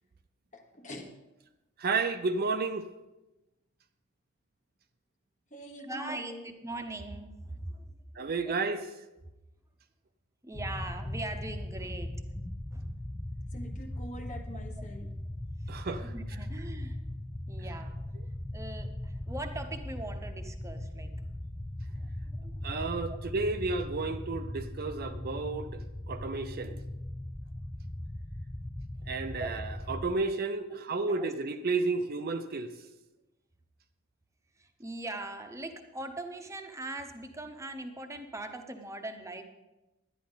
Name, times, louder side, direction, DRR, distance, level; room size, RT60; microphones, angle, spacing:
voice 1, 0.5-1.2 5.5-6.6 13.5-15.1, equal, 35° left, 4 dB, 1.3 m, -44 dB
voice 2, 1.8-2.9 8.2-8.8 15.7-16.1 22.6-25.8 26.1-26.8 29.1-32.7, right 3 dB, 45° right, 9 dB, 0.5 m, -32 dB
voice 3, 5.9-8.5 10.4-12.1 12.7-12.9 15.6-17.0 17.5-18.1 18.5-21.1 22.0-22.6 29.4-29.5 30.7-31.3 34.6-39.4, right 2 dB, 15° right, 6 dB, 0.9 m, -41 dB
sound 1, 10.5-30.1, left 1 dB, 10° left, 0.4 m, -39 dB
11.0 x 10.5 x 3.9 m, 1.0 s
head